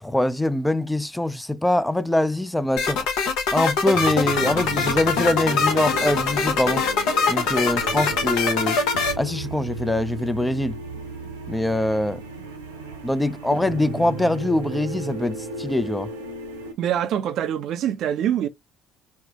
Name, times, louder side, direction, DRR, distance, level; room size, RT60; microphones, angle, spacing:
voice 1, 0.0-3.1 3.5-6.8 7.3-8.8 9.2-10.8 11.5-12.2 13.0-16.1, left 1 dB, 5° left, 0.4 m, -23 dB
sound 1, 2.8-9.1, left 5 dB, 65° left, 0.8 m, -23 dB
sound 2, 3.9-16.7, right 2 dB, 80° right, 0.8 m, -34 dB
voice 2, 16.8-18.5, right 10 dB, 55° right, 0.4 m, -24 dB
4.3 x 2.1 x 2.8 m
figure-of-eight pair, 55°, 0 cm